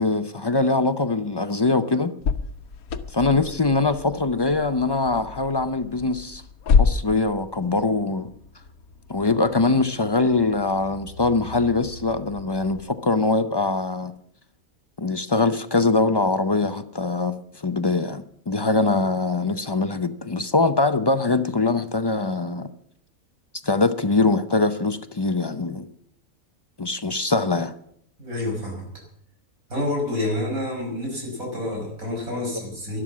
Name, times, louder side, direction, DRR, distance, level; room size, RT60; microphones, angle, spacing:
voice 1, 0.0-2.1 3.1-6.4 6.8-8.3 9.1-14.1 15.0-22.7 23.6-25.9 26.8-27.7, left 3 dB, 40° left, 10 dB, 0.3 m, -22 dB
sound 1, 2.2-12.9, left 5 dB, 85° left, 1.3 m, -29 dB
voice 2, 28.2-28.9 29.7-33.0, left 1 dB, 75° right, 1 dB, 6.3 m, -28 dB
12.5 x 11.5 x 7.2 m, 0.68 s
omnidirectional pair, 1.5 m